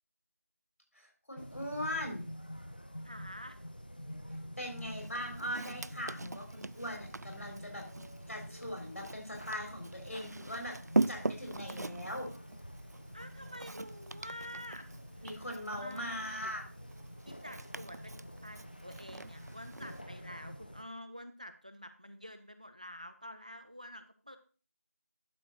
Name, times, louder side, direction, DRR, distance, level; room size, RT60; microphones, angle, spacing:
voice 1, 0.9-2.2 4.6-7.8 8.3-10.7 11.1-12.3 15.2-16.7, equal, 65° left, 1 dB, 3.9 m, -40 dB
sound 1, 1.4-20.8, equal, 35° left, 0.8 m, -48 dB
voice 2, 3.0-3.6 13.1-14.9 15.8-16.5 17.3-24.4, equal, 25° right, 10 dB, 0.7 m, -48 dB
Walk footsteps, 5.0-20.0, right 2 dB, 85° right, 0.4 m, -41 dB
11.5 x 6.2 x 4.0 m, 0.38 s
figure-of-eight pair, 180°, 9 cm